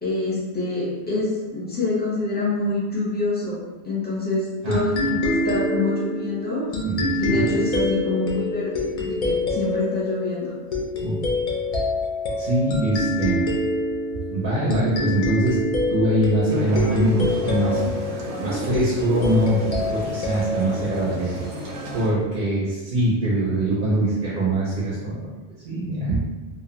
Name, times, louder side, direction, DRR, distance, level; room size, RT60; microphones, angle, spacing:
voice 1, 0.0-3.6 3.8-6.6 7.2-10.5, left 2 dB, 10° left, -6 dB, 0.5 m, -26 dB
sound 1, 4.7-21.9, left 1 dB, 60° left, 0.4 m, -26 dB
voice 2, 6.8-7.4 11.0-11.2 12.4-13.4 14.3-15.6 15.9-17.8 18.4-21.4 21.9-25.3 25.6-26.3, right 1 dB, 60° right, -6 dB, 0.7 m, -23 dB
sound 2, 16.5-22.1, right 1 dB, 90° right, 0.9 m, -32 dB
2.4 x 2.0 x 2.8 m, 1.1 s
omnidirectional pair, 1.1 m